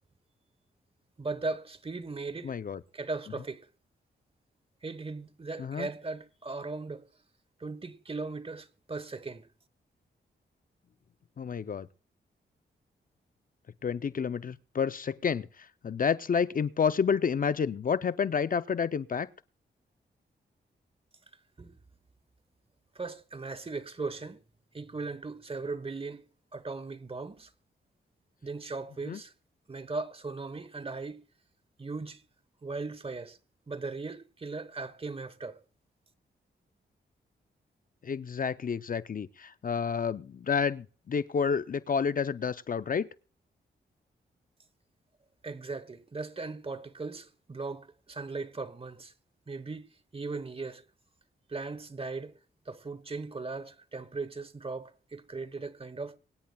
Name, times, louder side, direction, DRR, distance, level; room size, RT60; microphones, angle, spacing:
voice 1, 1.2-2.5 2.9-3.7 4.8-7.1 7.6-9.5 21.6-21.8 22.9-24.4 24.7-27.5 28.4-29.3 29.7-31.2 31.8-32.2 32.6-33.4 33.7-35.6 45.4-49.1 49.5-50.8 51.5-52.3 52.7-56.2, right 3 dB, 30° right, 1.1 m, -38 dB
voice 2, 2.4-2.8 5.6-5.9 11.4-11.9 13.8-19.3 29.1-29.2 38.0-43.1, left 6 dB, 45° left, 0.6 m, -30 dB
23.5 x 10.0 x 2.3 m
cardioid pair, 60°, 19 cm